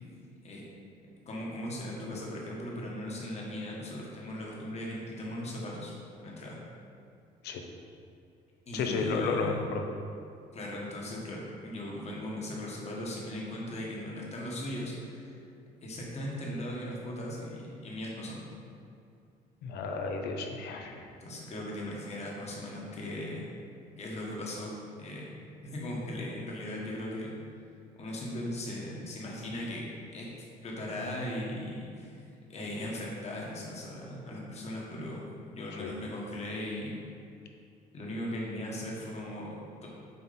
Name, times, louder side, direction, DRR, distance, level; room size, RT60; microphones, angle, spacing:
voice 1, 1.2-5.9 6.2-6.6 8.7-9.6 10.5-15.4 15.8-18.4 21.2-23.5 24.0-24.7 25.0-25.3 25.6-27.3 27.9-29.8 30.1-30.3 30.6-32.2 32.5-36.9 37.9-39.9, left 1 dB, 40° left, -3 dB, 1.5 m, -38 dB
voice 2, 8.7-9.8 19.6-21.0 35.8-35.9, left 4 dB, 75° left, 3 dB, 0.8 m, -32 dB
6.9 x 4.3 x 4.2 m, 2.5 s
cardioid pair, 110°, 17 cm